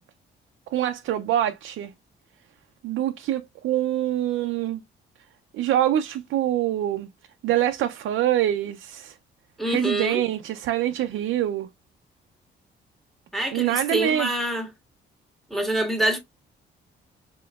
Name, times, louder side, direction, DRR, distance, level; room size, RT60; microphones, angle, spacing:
voice 1, 0.7-1.9 2.8-4.8 5.5-7.1 7.4-9.1 9.6-11.7 13.5-14.3, right 12 dB, 80° right, 0.5 m, -25 dB
voice 2, 9.6-10.2 13.3-14.7 15.5-16.2, right 1 dB, ahead, 1.6 m, -26 dB
5.0 x 3.7 x 2.2 m
cardioid pair, 90°, 20 cm